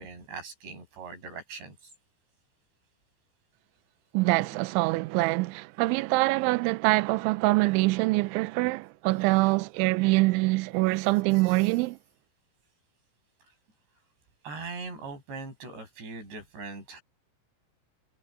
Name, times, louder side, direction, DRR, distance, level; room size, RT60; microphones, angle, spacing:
voice 1, 0.0-1.9 11.3-11.7 14.4-17.0, right 4 dB, 60° right, 9.7 m, -41 dB
voice 2, 4.1-12.0, right 22 dB, 85° right, 2.8 m, -24 dB
omnidirectional pair, 5.7 m